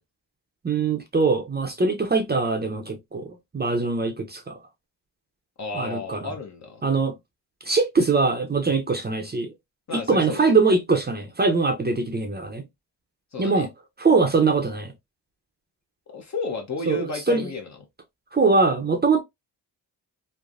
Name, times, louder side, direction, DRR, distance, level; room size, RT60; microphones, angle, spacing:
voice 1, 0.6-3.3 3.5-4.6 5.7-6.3 6.8-7.2 7.6-9.5 9.9-12.6 13.4-13.7 14.0-14.9 16.9-17.5 18.3-19.2, right 4 dB, 25° right, 0.6 m, -22 dB
voice 2, 5.6-6.8 9.9-10.6 13.3-13.7 16.1-17.8, left 3 dB, 45° left, 0.9 m, -32 dB
3.2 x 2.1 x 2.4 m
cardioid pair, 70°, 39 cm